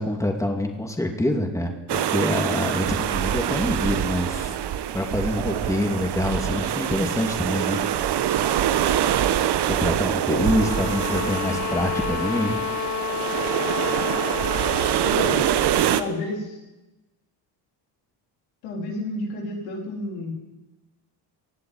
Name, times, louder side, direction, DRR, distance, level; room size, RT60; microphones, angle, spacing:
voice 1, 0.0-4.5 4.9-8.5 9.7-12.6, left 1 dB, 5° left, 3 dB, 2.8 m, -26 dB
sound 1, 1.9-16.0, right 10 dB, 55° right, 1.1 m, -25 dB
sound 2, 10.3-15.1, left 6 dB, 35° left, 1.0 m, -30 dB
voice 2, 15.0-15.4 15.9-16.6 18.6-20.3, left 2 dB, 90° left, -1 dB, 3.9 m, -30 dB
17.5 x 7.6 x 9.4 m, 1.0 s
supercardioid pair, 70°, 48 cm